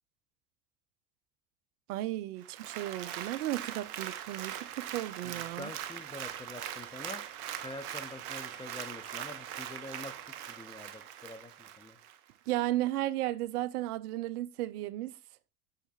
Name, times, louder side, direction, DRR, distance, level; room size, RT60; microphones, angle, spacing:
voice 1, 1.9-5.7 12.5-15.1, right 15 dB, 70° right, 0.6 m, -34 dB
Applause, 2.4-12.2 12.6-12.7, right 11 dB, 55° right, 0.9 m, -41 dB
voice 2, 5.2-7.2 7.6-12.0, left 2 dB, 10° left, 0.6 m, -46 dB
7.7 x 6.5 x 2.4 m
hypercardioid pair, 70°, 46 cm